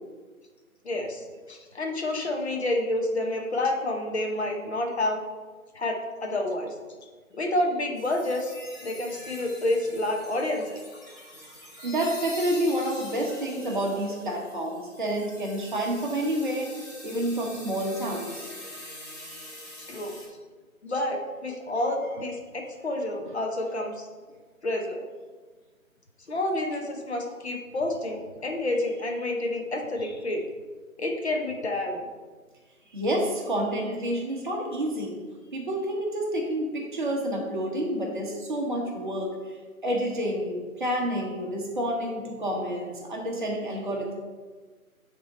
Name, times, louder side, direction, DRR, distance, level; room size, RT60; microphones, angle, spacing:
voice 1, 0.8-5.2 5.7-6.7 7.3-8.5 8.8-10.8 19.8-20.2 20.8-24.1 24.6-25.0 26.3-30.4 31.0-32.1, left 1 dB, 50° left, 2 dB, 0.9 m, -29 dB
sound 1, 7.9-20.3, left 1 dB, 10° left, 0.9 m, -44 dB
voice 2, 11.8-18.5 32.9-35.2 35.5-39.6 39.8-44.1, right 1 dB, 35° right, 0 dB, 1.1 m, -29 dB
9.2 x 3.7 x 4.1 m, 1.4 s
figure-of-eight pair, 150°, 43 cm